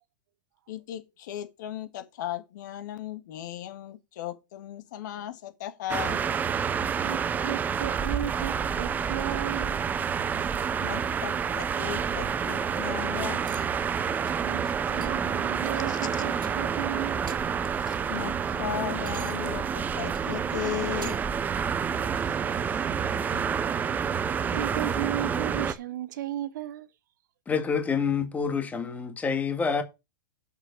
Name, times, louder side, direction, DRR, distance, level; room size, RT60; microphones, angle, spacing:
voice 1, 0.7-6.2 10.8-13.4 14.6-14.7 15.9-16.0 17.9-21.2 22.3-22.4 22.7-22.8 23.3-23.4, left 12 dB, 60° left, 2.1 m, -36 dB
sound 1, 5.9-25.7, right 7 dB, 15° right, 0.6 m, -28 dB
voice 2, 6.9-9.8 14.4-17.4 22.1-22.3 24.5-26.9, right 12 dB, 65° right, 0.8 m, -35 dB
sound 2, 13.4-13.9 14.2-14.5 14.9-15.3 15.7-15.9 16.3-16.8 17.1-17.7 18.1-21.4 21.9-22.1, right 9 dB, 85° right, 1.4 m, -46 dB
voice 3, 27.5-29.8, left 6 dB, 15° left, 1.7 m, -27 dB
7.0 x 6.1 x 6.6 m
hypercardioid pair, 135°, 11 cm